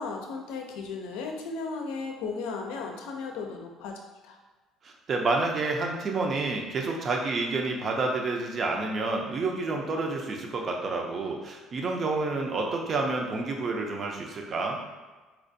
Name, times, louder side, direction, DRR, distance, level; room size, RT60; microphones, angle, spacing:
voice 1, 0.0-4.4, left 4 dB, 90° left, 2 dB, 0.5 m, -35 dB
voice 2, 4.8-14.8, right 3 dB, 40° right, 1 dB, 0.5 m, -29 dB
4.4 x 2.4 x 2.6 m, 1.3 s
cardioid pair, 105°, 0 cm